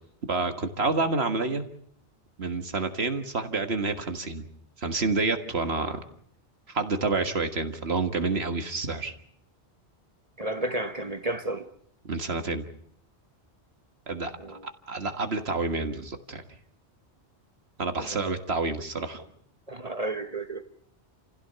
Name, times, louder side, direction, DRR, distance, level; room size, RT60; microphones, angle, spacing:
voice 1, 0.3-1.7 2.4-4.4 4.8-6.0 6.7-9.1 12.0-12.6 14.1-14.6 14.9-16.4 17.8-19.2, right 3 dB, 65° right, 1.9 m, -28 dB
voice 2, 10.4-11.7 14.4-14.6 18.0-18.3 19.7-20.6, right 1 dB, 35° right, 1.4 m, -32 dB
29.0 x 16.5 x 6.8 m
omnidirectional pair, 1.2 m